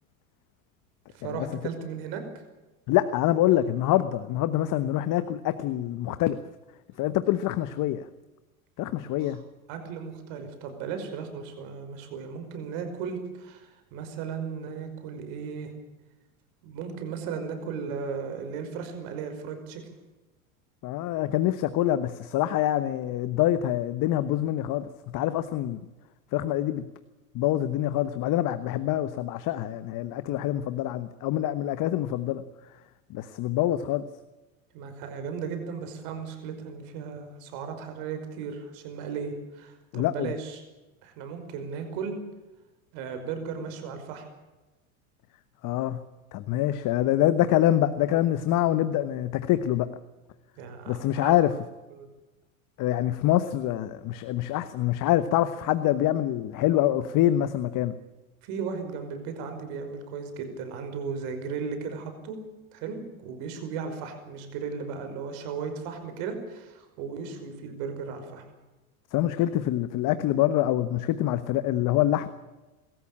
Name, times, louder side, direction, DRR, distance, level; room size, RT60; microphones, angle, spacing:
voice 1, 1.1-2.4 9.2-9.4 9.7-15.7 16.6-19.8 34.7-40.6 41.0-42.2 42.9-44.3 50.6-51.4 51.9-52.1 58.4-62.4 62.7-68.4, right 6 dB, 65° right, 7 dB, 5.5 m, -36 dB
voice 2, 2.9-6.4 7.0-8.0 8.8-9.4 20.8-24.9 25.1-25.8 26.3-26.8 27.3-32.4 33.1-34.0 39.9-40.3 45.6-46.0 46.3-49.9 50.9-51.5 52.8-57.9 69.1-72.3, left 13 dB, 45° left, 12 dB, 1.3 m, -25 dB
24.0 x 14.0 x 8.7 m, 1.1 s
hypercardioid pair, 105°, 43 cm